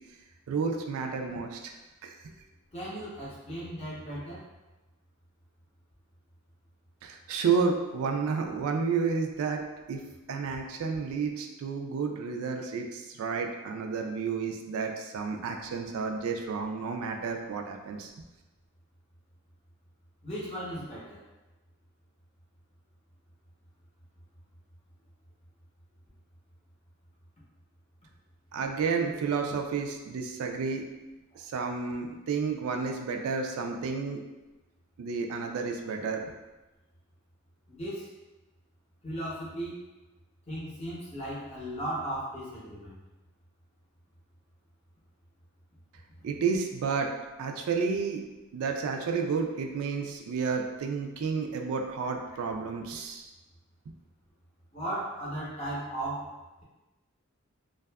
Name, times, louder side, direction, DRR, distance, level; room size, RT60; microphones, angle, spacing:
voice 1, 0.5-1.7 2.0-2.3 7.0-9.6 9.9-10.0 10.3-18.1 28.5-30.9 31.3-34.2 35.0-36.2 46.2-47.1 47.4-48.2 48.5-53.3, right 5 dB, 75° right, 4 dB, 0.3 m, -31 dB
voice 2, 2.7-4.4 20.2-21.2 37.7-38.1 39.0-39.8 40.5-43.0 52.3-52.4 54.7-56.3, right 1 dB, 30° left, -7 dB, 0.6 m, -36 dB
2.6 x 2.3 x 2.2 m, 1.1 s
head